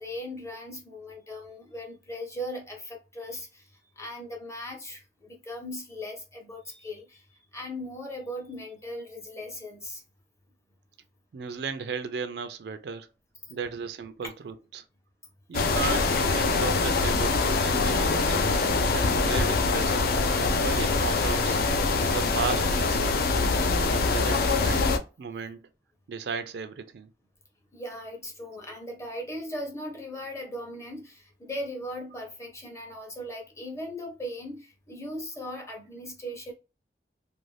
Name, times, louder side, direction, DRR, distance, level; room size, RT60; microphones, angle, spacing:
voice 1, 0.0-10.0 13.4-13.5 27.7-36.5, equal, 15° left, 0.7 m, -38 dB
voice 2, 11.3-13.1 13.5-14.8 15.5-20.1 20.6-21.6 22.0-23.5 23.9-25.6 26.1-27.1, right 5 dB, 65° right, 0.3 m, -35 dB
sound 1, 15.5-25.0, left 3 dB, 55° left, 0.4 m, -24 dB
2.5 x 2.3 x 3.2 m
head